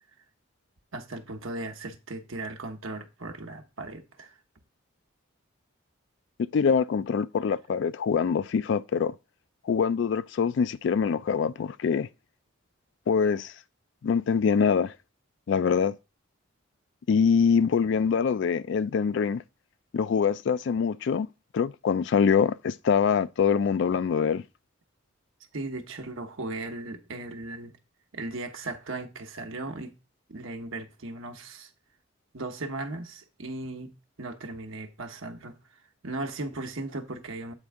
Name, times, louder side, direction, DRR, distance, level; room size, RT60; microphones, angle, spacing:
voice 1, 0.9-4.4 25.5-27.8 28.1-29.9 30.3-31.7 32.3-35.6 36.0-37.5, right 2 dB, 75° right, 1.0 m, -37 dB
voice 2, 6.5-9.1 9.7-12.1 13.1-13.5 14.0-14.9 15.5-15.9 17.1-19.4 19.9-21.3 21.5-24.4, left 6 dB, 60° left, 0.3 m, -24 dB
8.1 x 4.3 x 3.5 m
head